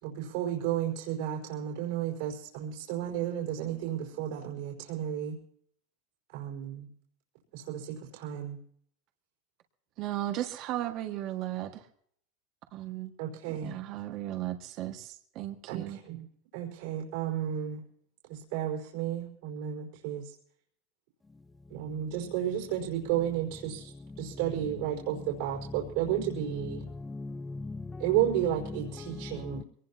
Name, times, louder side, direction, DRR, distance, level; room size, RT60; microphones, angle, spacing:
voice 1, 0.0-5.4 6.3-6.9 7.5-8.6 13.2-13.7 15.7-16.2 16.5-17.8 18.3-20.3 21.7-23.9 24.2-26.8 28.0-29.6, right 11 dB, 75° right, 4.9 m, -32 dB
voice 2, 10.0-11.9 12.7-13.1 13.6-16.0, right 13 dB, 50° right, 1.9 m, -35 dB
voice 3, 26.7-28.0 29.0-29.6, left 3 dB, 10° left, 0.5 m, -39 dB
23.0 x 19.5 x 2.9 m
supercardioid pair, 125°, 0 cm